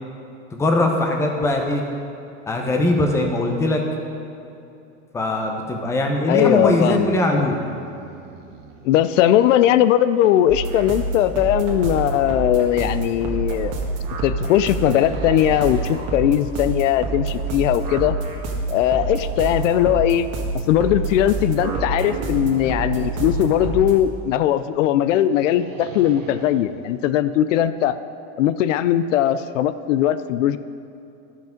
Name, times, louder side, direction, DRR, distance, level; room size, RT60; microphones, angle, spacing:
voice 1, 0.5-1.8 2.5-3.8 5.1-7.6, left 1 dB, 5° left, 2 dB, 0.6 m, -20 dB
voice 2, 6.3-7.6 8.8-13.7 14.2-18.2 18.7-20.3 20.7-28.0 28.4-30.6, left 11 dB, 75° left, 13 dB, 0.5 m, -19 dB
sound 1, 7.3-9.0 11.9-12.0 12.8-13.1 13.7-16.1 19.9-20.0 20.7-24.2 25.4-26.6, right 6 dB, 75° right, 1.2 m, -38 dB
sound 2, 10.5-24.0, right 3 dB, 40° right, 1.5 m, -27 dB
11.5 x 6.0 x 5.1 m, 2.7 s
supercardioid pair, 150°, 38 cm